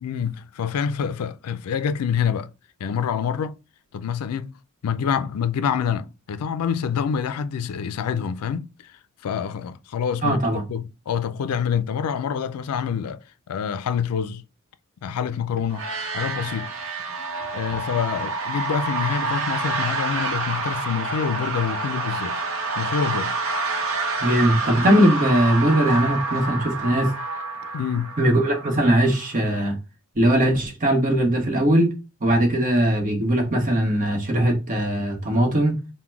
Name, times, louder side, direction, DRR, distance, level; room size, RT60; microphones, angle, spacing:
voice 1, 0.0-2.5 2.8-3.6 3.9-4.6 4.8-8.9 9.2-13.2 13.5-14.4 15.0-15.8 16.1-16.7 17.5-22.4 22.8-23.4 27.7-28.1, left 7 dB, 90° left, 0.4 m, -26 dB
voice 2, 10.2-10.6 24.2-27.1 28.2-29.8 30.2-31.9 32.2-35.8, right 1 dB, 35° right, 1.1 m, -20 dB
sound 1, 15.7-29.4, right 3 dB, 65° right, 0.9 m, -28 dB
3.8 x 2.2 x 4.4 m
head